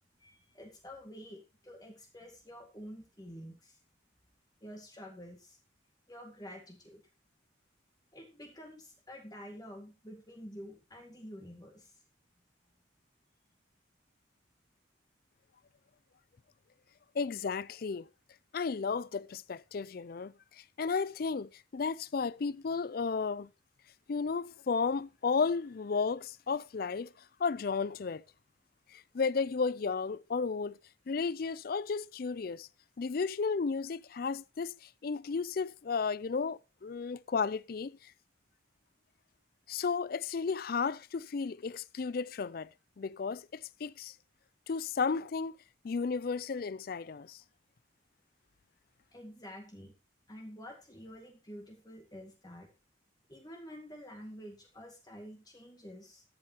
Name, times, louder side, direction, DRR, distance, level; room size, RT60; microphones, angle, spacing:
voice 1, 0.2-3.8 4.6-5.6 6.1-7.0 8.1-12.0 49.1-49.9 50.3-52.7 53.3-56.2, equal, 20° left, 2.2 m, -49 dB
voice 2, 17.1-18.1 18.5-23.5 24.1-27.1 27.4-28.2 28.9-30.8 31.1-32.7 33.0-38.1 39.7-42.7 43.0-44.1 44.7-45.6 45.8-47.4, left 5 dB, 50° left, 0.4 m, -33 dB
13.5 x 8.8 x 3.0 m
head